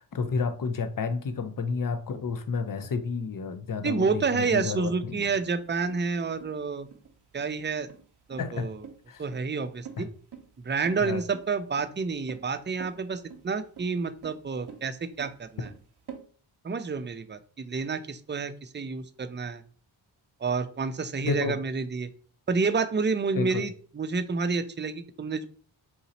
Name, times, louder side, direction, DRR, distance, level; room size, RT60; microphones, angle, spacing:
voice 1, 0.0-5.2 8.4-8.7 9.1-9.2 10.0-10.1 11.0-11.2 21.2-21.6 23.3-23.6, left 4 dB, 40° left, 0.8 m, -30 dB
voice 2, 3.8-6.9 7.3-7.9 8.3-8.8 9.2-10.1 10.6-15.7 16.6-19.6 20.4-22.1 22.5-25.4, right 4 dB, 25° right, 0.5 m, -29 dB
sound 1, 5.4-16.2, right 7 dB, 50° right, 1.0 m, -47 dB
4.0 x 2.8 x 4.2 m
cardioid pair, 40°, 49 cm